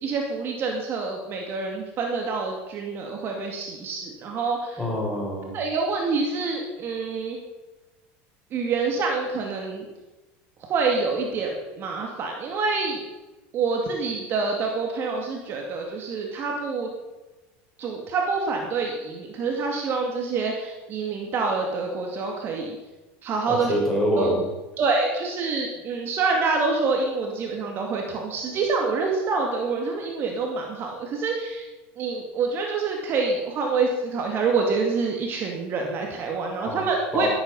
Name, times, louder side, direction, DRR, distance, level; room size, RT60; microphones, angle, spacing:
voice 1, 0.0-4.8 5.5-7.4 8.5-9.8 10.7-13.0 13.5-16.9 17.8-22.8 23.2-23.7 24.2-24.4 24.8-31.7 32.0-37.3, right 4 dB, 45° right, 1 dB, 2.3 m, -26 dB
voice 2, 4.8-5.5 23.5-24.4 36.6-36.8 37.1-37.3, equal, 5° left, -4 dB, 6.3 m, -25 dB
13.0 x 13.0 x 5.5 m, 1.1 s
supercardioid pair, 120°, 5 cm